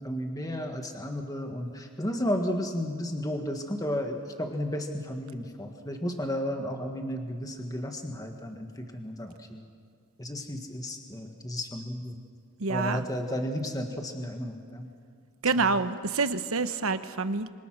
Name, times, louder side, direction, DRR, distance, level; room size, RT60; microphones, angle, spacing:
voice 1, 0.0-9.6 10.2-12.2 12.7-14.9, equal, 15° left, 3 dB, 1.7 m, -33 dB
voice 2, 12.6-13.0 15.4-17.5, right 4 dB, 70° right, 10 dB, 1.1 m, -27 dB
26.0 x 25.5 x 6.2 m, 2.2 s
head